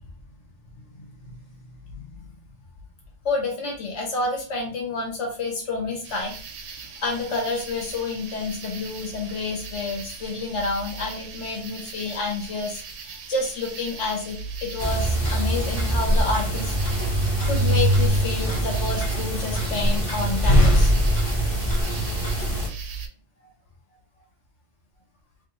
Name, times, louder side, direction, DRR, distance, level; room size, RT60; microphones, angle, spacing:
voice 1, 1.8-2.4 3.2-6.3 6.7-16.7 17.0-20.9, left 3 dB, 75° left, 0 dB, 1.4 m, -29 dB
sound 1, 6.0-23.1, right 5 dB, 85° right, 0.9 m, -37 dB
sound 2, 14.8-22.7, equal, 30° left, 0.8 m, -22 dB
2.8 x 2.7 x 3.0 m, 0.41 s
omnidirectional pair, 1.2 m